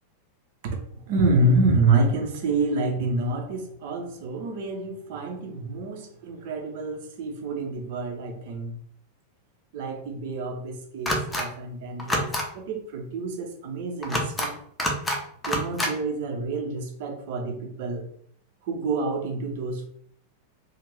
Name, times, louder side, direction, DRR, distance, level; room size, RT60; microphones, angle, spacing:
voice 1, 0.6-8.8 9.7-14.6 15.5-18.1 18.6-19.9, right 2 dB, 50° right, 3 dB, 0.7 m, -27 dB
sound 1, 11.1-11.4 12.0-12.4 14.0-14.5 14.8-15.2 15.4-15.9, equal, 10° left, 0.6 m, -26 dB
2.5 x 2.5 x 3.2 m, 0.64 s
figure-of-eight pair, 90°, 0 cm